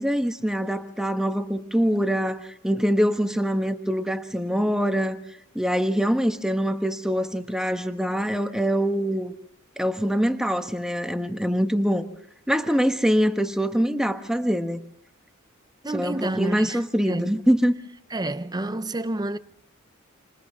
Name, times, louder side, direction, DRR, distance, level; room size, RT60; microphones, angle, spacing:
voice 1, 0.0-5.2 5.5-9.3 9.8-12.1 12.5-14.8 15.9-17.8, equal, 5° right, 1.3 m, -24 dB
voice 2, 15.8-17.4 18.1-19.4, right 1 dB, 20° right, 0.7 m, -29 dB
29.5 x 26.5 x 3.7 m
head